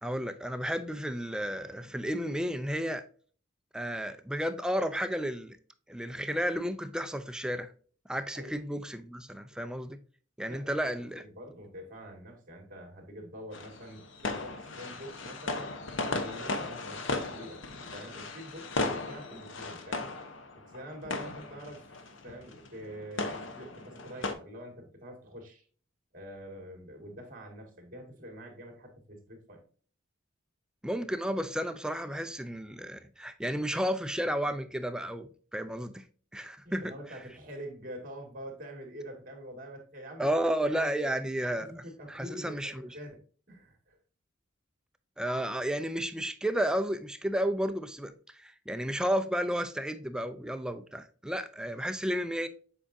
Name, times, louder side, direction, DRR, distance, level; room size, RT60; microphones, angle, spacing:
voice 1, 0.0-3.0 3.7-5.6 5.9-7.7 8.1-10.0 10.4-11.2 30.8-36.0 36.3-36.9 40.2-43.0 45.2-52.5, equal, 5° right, 0.4 m, -32 dB
voice 2, 10.5-10.9 11.2-15.7 16.1-17.6 17.9-20.1 20.5-21.8 22.2-25.7 26.1-29.6 36.6-40.3 40.7-41.1 41.6-43.2 43.5-44.0, equal, 45° right, 2.1 m, -45 dB
sound 1, 13.5-24.3, left 3 dB, 80° left, 0.9 m, -36 dB
7.5 x 4.9 x 2.6 m
head